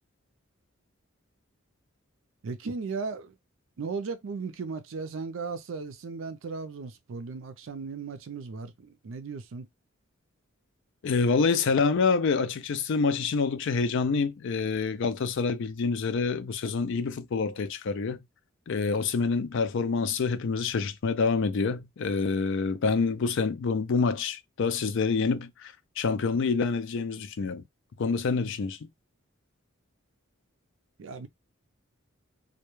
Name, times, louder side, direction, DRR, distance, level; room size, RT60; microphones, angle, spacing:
voice 1, 2.4-3.4 3.8-9.7 31.0-31.3, right 4 dB, 70° right, 0.4 m, -36 dB
voice 2, 11.0-18.2 18.7-27.6 28.0-28.9, left 4 dB, 65° left, 0.4 m, -27 dB
2.2 x 2.1 x 3.0 m
head